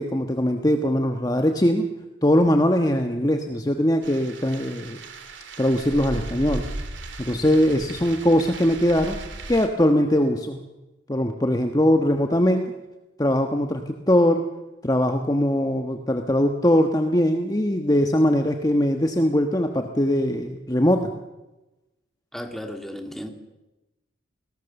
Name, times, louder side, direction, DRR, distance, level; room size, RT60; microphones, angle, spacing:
voice 1, 0.0-1.9 2.2-5.0 5.6-6.6 7.2-9.2 9.5-10.6 11.1-12.6 13.2-14.4 14.8-21.1, equal, 20° left, 1.2 m, -21 dB
sound 1, 4.0-9.7, right 2 dB, 75° right, 2.8 m, -36 dB
voice 2, 22.3-23.3, equal, ahead, 2.2 m, -34 dB
29.0 x 19.0 x 7.1 m
head